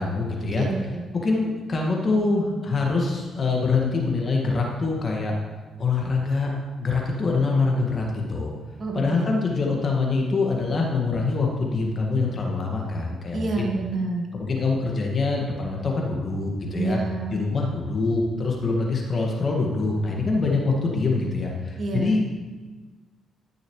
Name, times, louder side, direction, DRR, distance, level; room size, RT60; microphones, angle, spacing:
voice 1, 0.0-0.7 1.1-5.3 5.8-8.5 8.9-13.7 14.3-17.0 17.3-22.3, left 3 dB, 45° left, -1 dB, 1.8 m, -24 dB
voice 2, 0.6-1.0 8.8-9.4 13.3-14.3 16.7-17.4 21.8-22.2, right 3 dB, 45° right, 1 dB, 1.6 m, -28 dB
12.5 x 6.3 x 3.2 m, 1.3 s
supercardioid pair, 55°, 0 cm